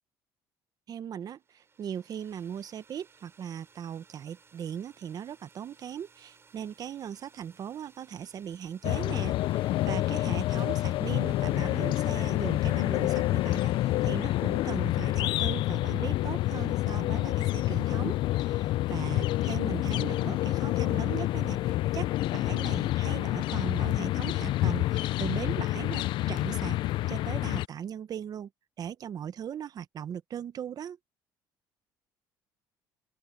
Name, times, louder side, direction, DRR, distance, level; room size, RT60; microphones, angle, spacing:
voice 1, 0.9-26.8 27.1-28.5 28.8-31.0, right 9 dB, 45° right, 1.0 m, -39 dB
sound 1, 1.3-15.8, right 5 dB, 30° right, 4.4 m, -60 dB
sound 2, 8.8-27.7, left 16 dB, 65° left, 0.4 m, -28 dB
open air
cardioid pair, 105°, 9 cm